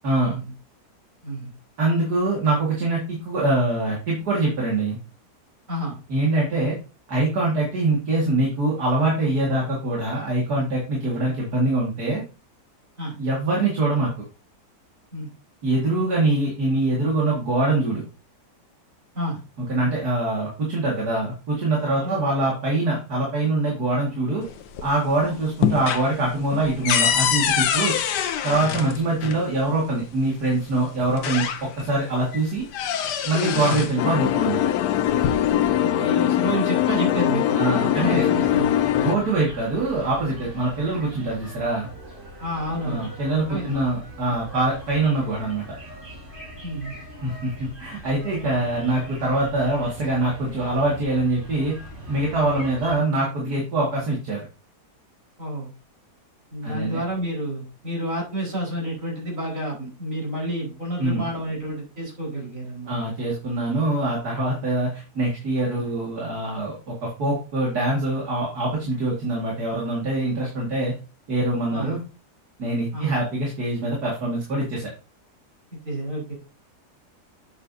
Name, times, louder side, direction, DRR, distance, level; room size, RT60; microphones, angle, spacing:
voice 1, 0.0-0.4 1.8-5.0 6.1-6.7 7.1-12.2 13.2-14.1 15.6-18.0 19.7-24.4 24.8-27.9 28.4-32.6 33.2-34.7 37.6-38.3 38.9-41.9 42.9-45.6 47.2-51.7 52.1-54.4 56.6-57.0 61.0-61.3 62.9-70.9 71.3-72.0 72.6-74.9, right 2 dB, 70° right, -3 dB, 2.7 m, -24 dB
sound 1, 24.5-25.1 25.4-29.4 30.5-30.6 31.0-32.0 32.3-34.0 34.9-35.7, left 8 dB, 90° left, 1.4 m, -25 dB
sound 2, 34.0-39.2, left 11 dB, 75° left, 1.1 m, -21 dB
voice 2, 35.8-38.8 39.0-39.2 42.4-43.1 43.3-43.8 44.3-44.4 46.6-47.0 52.5-52.7 55.4-55.7 56.5-63.1 65.8-65.9 71.7-72.0 72.9-73.2 75.7-76.3, right 1 dB, 50° right, -3 dB, 5.2 m, -30 dB
sound 3, 37.9-52.9, equal, 30° right, 5.5 m, -41 dB
8.0 x 8.0 x 2.8 m, 0.33 s
omnidirectional pair, 1.8 m